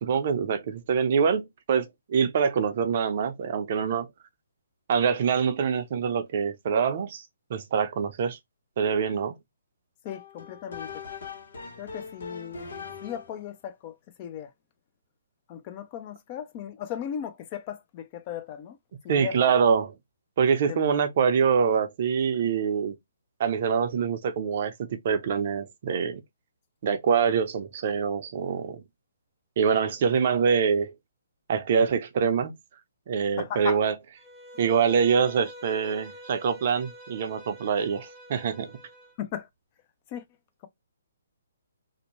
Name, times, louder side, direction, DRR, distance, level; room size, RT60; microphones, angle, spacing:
voice 1, 0.0-4.1 4.9-7.2 7.5-8.4 8.8-9.4 19.1-19.9 20.4-23.0 23.4-26.2 26.8-28.8 29.6-30.9 31.5-32.6 33.1-33.9 34.6-38.7, right 6 dB, 50° right, 0.6 m, -25 dB
voice 2, 10.0-10.9 11.8-12.7 13.0-14.5 15.5-18.8 19.0-19.5 20.7-20.8 33.4-33.8 39.2-39.5 40.1-40.2, left 9 dB, 30° left, 0.5 m, -36 dB
sound 1, 10.1-13.4, left 5 dB, 70° left, 0.9 m, -41 dB
Bowed string instrument, 34.2-39.2, equal, 5° left, 1.0 m, -46 dB
2.7 x 2.1 x 2.9 m
hypercardioid pair, 145°, 0 cm